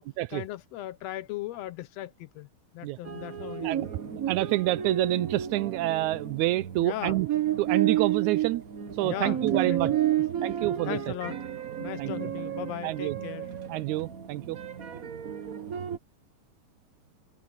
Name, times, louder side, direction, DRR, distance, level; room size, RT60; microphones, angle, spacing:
voice 1, 0.3-2.5 2.7-3.9 6.8-7.2 9.0-9.9 10.9-11.4 11.8-13.5, left 14 dB, 75° left, 1.7 m, -37 dB
sound 1, 3.0-16.0, right 11 dB, 65° right, 0.8 m, -31 dB
voice 2, 3.6-7.3 7.6-8.6 9.0-9.9 10.4-11.1 12.0-12.3 12.8-13.2 13.7-14.6, right 17 dB, 85° right, 2.0 m, -28 dB
omnidirectional pair, 3.4 m